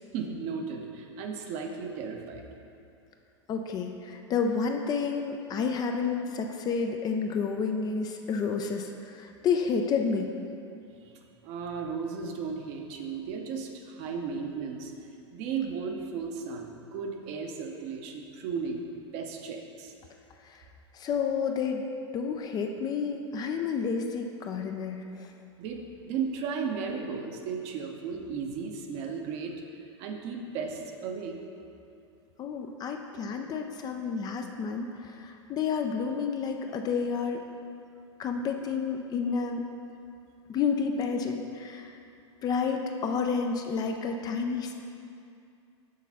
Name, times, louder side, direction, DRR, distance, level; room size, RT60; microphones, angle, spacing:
voice 1, 0.1-2.4 11.1-11.2 11.4-14.9 15.3-18.8 19.1-19.9 25.6-29.5 30.0-31.4, right 5 dB, 45° right, 3 dB, 0.8 m, -35 dB
voice 2, 3.5-10.3 20.4-20.6 20.9-21.8 22.1-25.3 32.4-37.4 38.2-39.6 40.5-42.0 42.4-44.7, left 5 dB, 25° left, 4 dB, 0.4 m, -30 dB
6.5 x 4.0 x 5.6 m, 2.5 s
figure-of-eight pair, 90°, 15 cm